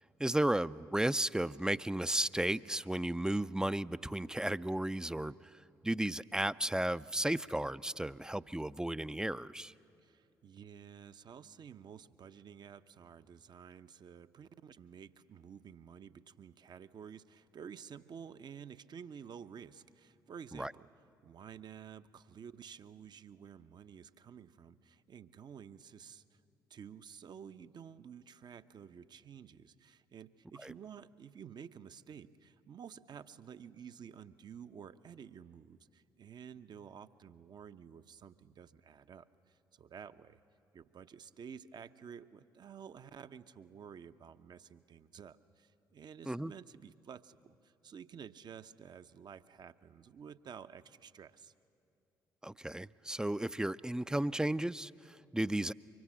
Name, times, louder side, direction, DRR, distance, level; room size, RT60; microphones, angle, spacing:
voice 1, 0.2-5.3 5.8-9.7 20.5-20.7 30.6-30.7 46.3-46.5 52.4-55.7, right 1 dB, 5° right, 16 dB, 0.5 m, -34 dB
voice 2, 10.0-20.9 21.2-26.4 26.7-40.4 40.7-51.5, right 7 dB, 50° right, 11 dB, 0.8 m, -51 dB
24.5 x 24.0 x 7.4 m, 2.7 s
hypercardioid pair, 45°, 10 cm